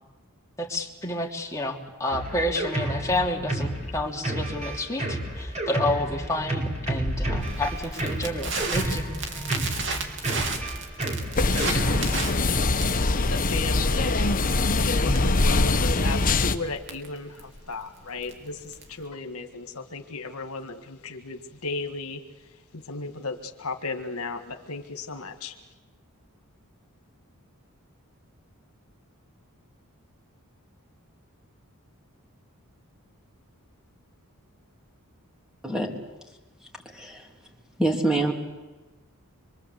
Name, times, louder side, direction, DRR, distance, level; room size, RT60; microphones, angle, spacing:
voice 1, 0.6-9.1, left 1 dB, 15° left, 0 dB, 3.0 m, -29 dB
Drum kit, 2.1-12.2, right 1 dB, 30° right, 5.5 m, -31 dB
Crackle, 7.0-19.0, right 3 dB, 55° right, 3.2 m, -34 dB
sound 1, 11.4-16.6, left 2 dB, 40° left, 1.2 m, -23 dB
voice 2, 13.2-22.2 22.7-25.6, left 3 dB, 75° left, 6 dB, 1.8 m, -35 dB
voice 3, 36.8-37.3 37.8-38.3, right 2 dB, 5° right, 1 dB, 3.3 m, -25 dB
26.0 x 24.0 x 8.2 m, 1.2 s
head